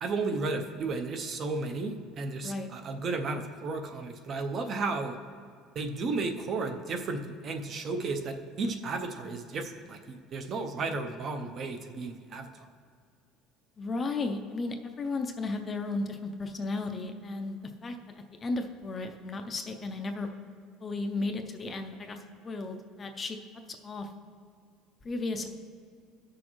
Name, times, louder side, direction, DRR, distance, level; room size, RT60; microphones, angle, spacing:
voice 1, 0.0-5.2 5.8-12.7, right 3 dB, 30° right, 6 dB, 0.5 m, -33 dB
voice 2, 13.8-18.0 18.4-20.3 20.8-22.2 22.4-23.4 23.8-24.1 25.0-25.5, left 3 dB, 20° left, 5 dB, 0.4 m, -34 dB
14.5 x 6.3 x 3.0 m, 2.2 s
cardioid pair, 165°, 0 cm